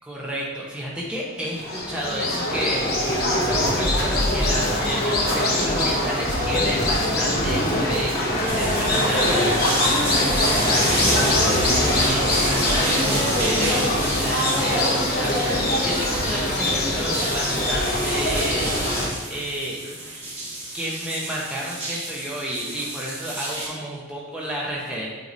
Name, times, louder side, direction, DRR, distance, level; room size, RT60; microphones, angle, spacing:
voice 1, 0.1-18.7 19.3-19.8 20.7-25.1, right 1 dB, 5° right, -5 dB, 0.8 m, -31 dB
sound 1, 1.4-19.1, left 1 dB, 45° left, 1.2 m, -22 dB
sound 2, 8.5-23.7, right 1 dB, 25° right, 1.6 m, -31 dB
8.1 x 4.6 x 2.7 m, 1.3 s
head